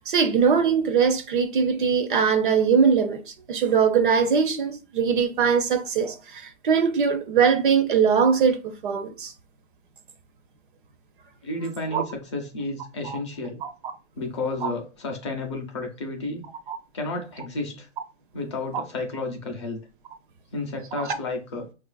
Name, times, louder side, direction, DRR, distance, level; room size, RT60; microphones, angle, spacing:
voice 1, 0.1-3.2 3.5-9.3 11.9-12.0 13.0-13.2 13.6-13.7 14.6-14.7 16.7-16.8 18.7-18.8 20.9-21.2, right 6 dB, 50° right, 0.5 m, -21 dB
voice 2, 11.4-13.6 14.2-16.5 16.9-17.9 18.3-19.8 20.5-21.7, left 2 dB, 25° left, 0.4 m, -32 dB
4.7 x 2.4 x 2.2 m
hypercardioid pair, 160°, 35 cm